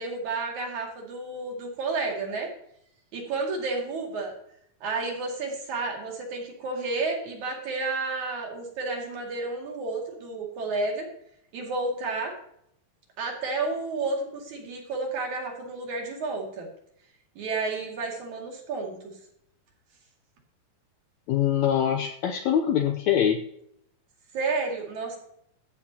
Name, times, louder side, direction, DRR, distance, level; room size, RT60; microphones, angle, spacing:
voice 1, 0.0-2.5 3.1-4.3 4.8-11.1 11.5-12.4 13.2-16.7 17.4-19.0 24.3-25.2, right 3 dB, 60° right, 0 dB, 3.5 m, -31 dB
voice 2, 21.3-23.4, left 9 dB, 75° left, 5 dB, 1.7 m, -23 dB
14.5 x 8.4 x 2.8 m, 0.71 s
omnidirectional pair, 4.0 m